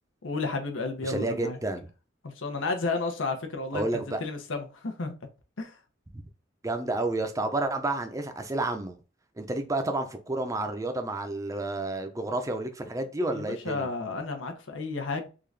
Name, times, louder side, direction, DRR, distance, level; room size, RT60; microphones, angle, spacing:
voice 1, 0.2-1.6 2.2-5.1 5.6-5.8 13.3-15.3, left 3 dB, 85° left, 0.8 m, -32 dB
voice 2, 1.0-1.9 3.7-4.2 6.1-6.2 6.6-9.0 9.4-13.9, right 2 dB, 15° right, 0.5 m, -30 dB
3.8 x 2.4 x 3.2 m
head